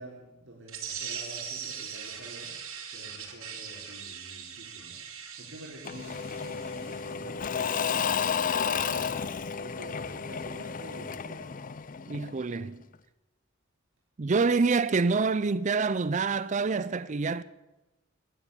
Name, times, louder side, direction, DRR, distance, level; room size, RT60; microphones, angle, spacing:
voice 1, 0.0-2.6 2.9-5.0 5.4-9.2 9.5-11.5, right 1 dB, 60° right, 3.8 m, -47 dB
sound 1, 0.7-7.1, right 7 dB, 80° right, 3.0 m, -40 dB
Engine / Mechanisms / Drill, 5.8-12.5, left 6 dB, 40° left, 0.5 m, -32 dB
voice 2, 12.1-12.8 14.2-17.4, right 4 dB, 35° right, 0.4 m, -26 dB
14.0 x 9.1 x 9.7 m
head